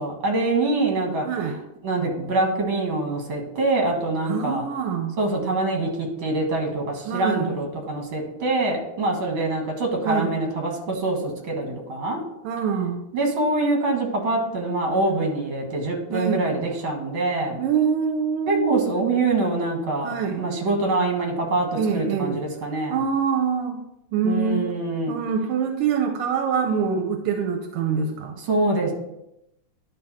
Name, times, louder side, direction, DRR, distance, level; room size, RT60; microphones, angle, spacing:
voice 1, 0.0-1.3 1.8-4.6 5.2-12.2 13.1-17.6 18.5-23.0 24.2-25.1 28.5-28.9, right 2 dB, 65° right, 1 dB, 2.4 m, -24 dB
voice 2, 1.2-1.6 4.3-5.2 7.1-7.6 10.0-10.4 12.4-13.0 16.1-16.5 17.6-18.9 20.0-20.4 21.7-22.4 22.9-23.8 24.1-24.7 25.1-28.3, right 6 dB, 90° right, 5 dB, 1.6 m, -24 dB
11.0 x 3.7 x 4.2 m, 0.84 s
omnidirectional pair, 2.4 m